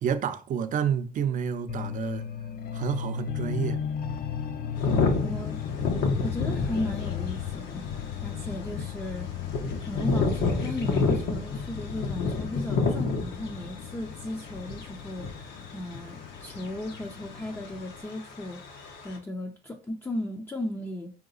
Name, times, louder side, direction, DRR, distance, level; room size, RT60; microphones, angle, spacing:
voice 1, 0.0-2.2 2.7-3.8, right 8 dB, 50° right, 0.6 m, -29 dB
sound 1, 1.7-18.0, left 8 dB, 60° left, 0.6 m, -36 dB
sound 2, 4.7-19.2, left 4 dB, 80° left, 1.1 m, -29 dB
voice 2, 5.2-5.6 6.2-9.3 9.8-21.1, left 1 dB, 15° left, 0.5 m, -36 dB
4.7 x 2.9 x 3.9 m
cardioid pair, 110°, 17 cm